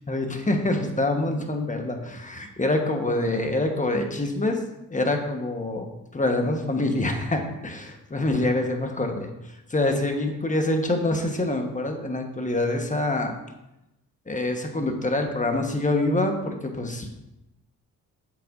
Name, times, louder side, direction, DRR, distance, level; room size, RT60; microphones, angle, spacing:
voice 1, 0.1-4.6 4.9-5.9 6.1-9.3 9.7-13.3 14.3-17.1, left 2 dB, 20° left, 4 dB, 1.3 m, -25 dB
8.5 x 6.7 x 2.6 m, 0.91 s
cardioid pair, 60°, 36 cm